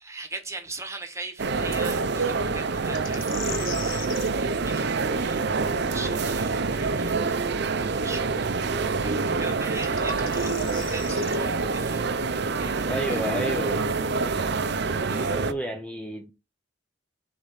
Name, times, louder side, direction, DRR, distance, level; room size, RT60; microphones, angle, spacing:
voice 1, 0.0-7.4 7.8-13.2 15.1-15.4, right 3 dB, 15° right, 1.3 m, -41 dB
sound 1, 1.4-15.5, right 4 dB, 55° right, 0.6 m, -26 dB
sound 2, 2.9-4.3 7.5-7.6 9.7-11.4, left 9 dB, 80° left, 1.0 m, -38 dB
sound 3, 4.7-10.7, left 1 dB, 65° left, 1.7 m, -48 dB
voice 2, 12.9-13.9 15.1-16.3, equal, 5° left, 0.6 m, -31 dB
6.5 x 3.7 x 5.7 m
head